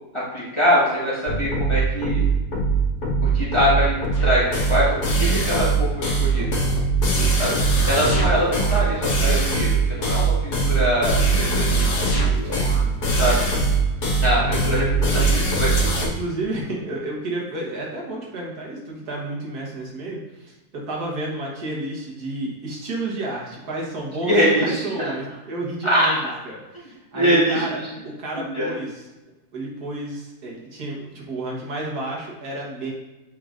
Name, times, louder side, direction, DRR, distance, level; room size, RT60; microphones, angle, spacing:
voice 1, 0.1-2.2 3.2-3.9 4.2-6.5 7.4-7.5 7.9-11.9 13.2-13.4 14.2-15.7 24.2-24.8 25.8-26.2 27.1-27.8 28.4-28.7, equal, 20° left, -8 dB, 1.4 m, -23 dB
sound 1, 1.3-16.1, right 3 dB, 75° left, 1.6 m, -21 dB
voice 2, 7.1-7.6 12.4-13.0 14.1-14.6 15.8-29.0 29.5-32.9, right 2 dB, 75° right, -3 dB, 1.8 m, -31 dB
7.7 x 5.1 x 2.5 m, 1.1 s
omnidirectional pair, 1.7 m